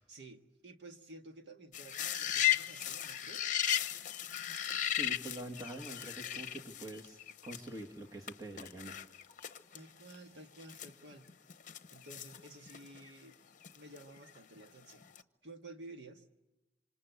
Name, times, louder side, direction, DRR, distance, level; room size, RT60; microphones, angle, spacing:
voice 1, 0.1-3.6 9.7-11.3 11.9-13.3 13.7-15.1 15.4-16.2, right 2 dB, 70° right, 5 dB, 1.7 m, -53 dB
sound 1, 1.7-7.8 8.3-8.4 8.6-9.8 10.1-10.2 10.6-13.1 13.6-14.6 14.9-15.2, left 11 dB, 45° left, 0.9 m, -36 dB
voice 2, 4.8-8.9, right 1 dB, 20° right, -1 dB, 1.8 m, -45 dB
27.0 x 26.0 x 8.2 m, 1.0 s
head